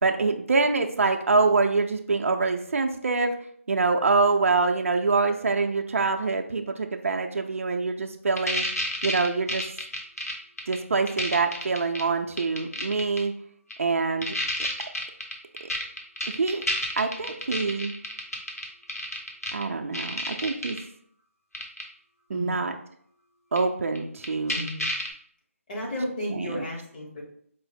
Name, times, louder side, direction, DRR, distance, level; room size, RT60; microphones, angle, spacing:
voice 1, 0.0-3.3 3.7-8.6 9.0-9.6 10.7-13.3 13.8-14.3 16.3-16.6 17.0-18.0 19.5-20.8 22.3-22.7 23.5-24.7 26.3-26.6, right 4 dB, 65° right, 4 dB, 0.4 m, -25 dB
sound 1, 8.4-10.7 11.1-12.0 12.4-13.2 13.7-13.8 14.2-19.6 19.9-20.8 21.5-21.8 23.6-23.7 24.0-24.1 24.2-25.1, left 1 dB, 90° left, 1.0 m, -29 dB
voice 2, 22.3-22.6 24.5-24.9 25.7-27.2, left 1 dB, 35° left, -4 dB, 1.2 m, -33 dB
4.6 x 2.0 x 3.3 m, 0.64 s
figure-of-eight pair, 160°, 8 cm